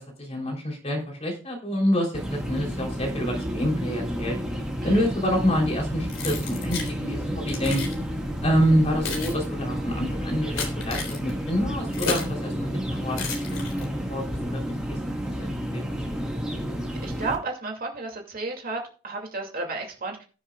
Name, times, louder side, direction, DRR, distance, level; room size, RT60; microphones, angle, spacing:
voice 1, 0.0-4.4 4.8-7.9 8.4-14.2 14.5-16.0, equal, 30° left, 0 dB, 3.6 m, -27 dB
sound 1, 2.1-17.4, equal, 5° right, 1.8 m, -31 dB
voice 2, 4.8-5.1 17.0-20.2, right 3 dB, 45° right, 1 dB, 2.5 m, -32 dB
Keys jangling, 6.1-6.9 7.5-8.0 8.7-12.4 13.1-14.0, left 4 dB, 70° left, 3.5 m, -33 dB
19.5 x 7.2 x 2.4 m, 0.37 s
head